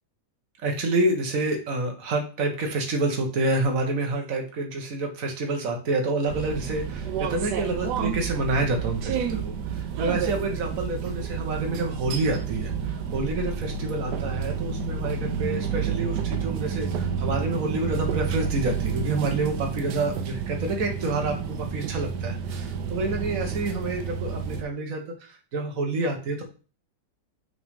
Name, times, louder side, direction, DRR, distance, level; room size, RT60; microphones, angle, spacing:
voice 1, 0.6-26.4, right 2 dB, 55° right, 2 dB, 1.6 m, -28 dB
sound 1, 6.3-24.6, right 7 dB, 80° right, 1.4 m, -30 dB
5.9 x 3.3 x 5.2 m, 0.36 s
omnidirectional pair, 1.8 m